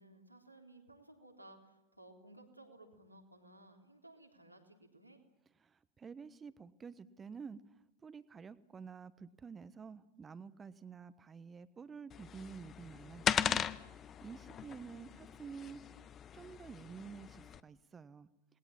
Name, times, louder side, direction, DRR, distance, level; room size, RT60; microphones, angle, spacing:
voice 1, 0.0-5.2 14.9-15.2, right 1 dB, 90° right, 2 dB, 3.5 m, -58 dB
voice 2, 5.6-16.0 16.3-18.3, right 5 dB, 20° right, 15 dB, 1.2 m, -50 dB
sound 1, 12.1-17.6, left 9 dB, 25° left, 0.9 m, -39 dB
28.0 x 20.0 x 7.4 m, 0.91 s
figure-of-eight pair, 90°, 0 cm